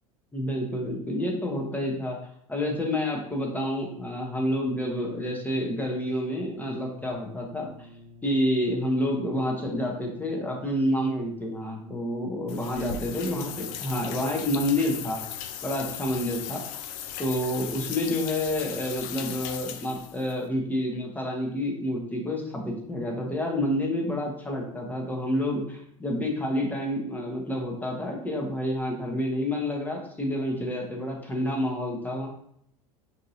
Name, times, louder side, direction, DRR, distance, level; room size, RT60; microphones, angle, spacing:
voice 1, 0.3-2.2 2.5-7.7 8.2-15.2 15.6-16.6 17.2-32.3, left 1 dB, 10° left, 0 dB, 0.7 m, -29 dB
Brass instrument, 4.6-14.0, left 1 dB, 65° right, 0.7 m, -49 dB
sound 1, 12.5-20.3, left 9 dB, 50° left, 0.4 m, -37 dB
3.6 x 2.7 x 2.7 m, 0.68 s
hypercardioid pair, 80°, 18 cm